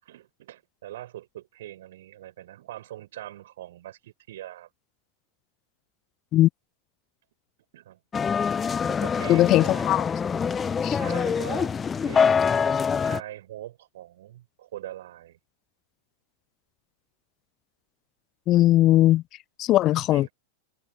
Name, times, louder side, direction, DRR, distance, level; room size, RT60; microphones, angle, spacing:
voice 1, 0.0-4.7 7.7-8.0 8.8-9.9 10.9-11.7 12.1-15.4 20.1-20.3, right 13 dB, 55° right, 7.3 m, -42 dB
sound 1, 8.1-13.2, left 6 dB, 20° left, 0.9 m, -25 dB
voice 2, 9.3-10.1 10.8-11.0 18.5-19.2 19.6-20.3, left 15 dB, 35° left, 0.5 m, -19 dB
figure-of-eight pair, 90°, 0 cm